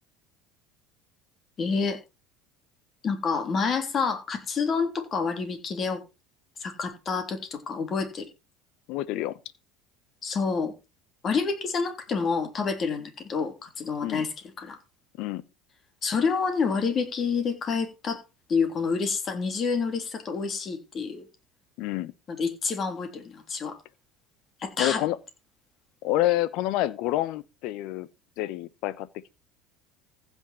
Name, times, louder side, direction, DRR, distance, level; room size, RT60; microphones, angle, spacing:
voice 1, 1.6-2.0 3.0-6.0 6.6-8.3 10.2-10.7 11.2-14.3 14.6-14.8 16.0-18.2 18.5-21.3 22.3-23.8 24.6-25.0, left 5 dB, 40° left, 3.2 m, -28 dB
voice 2, 8.9-9.4 14.0-14.2 15.2-15.4 21.8-22.1 24.8-25.2 26.0-28.1 28.4-29.3, left 15 dB, 65° left, 0.9 m, -28 dB
15.0 x 6.3 x 4.5 m
hypercardioid pair, 75°, 0 cm